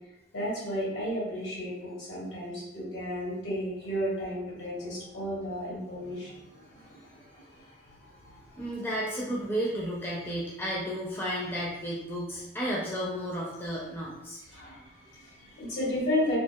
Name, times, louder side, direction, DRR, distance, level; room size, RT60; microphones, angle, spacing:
voice 1, 0.3-8.6 14.5-16.4, equal, 85° left, -8 dB, 1.5 m, -34 dB
voice 2, 8.6-14.4, equal, 10° left, -5 dB, 0.4 m, -33 dB
2.7 x 2.4 x 2.3 m, 0.99 s
head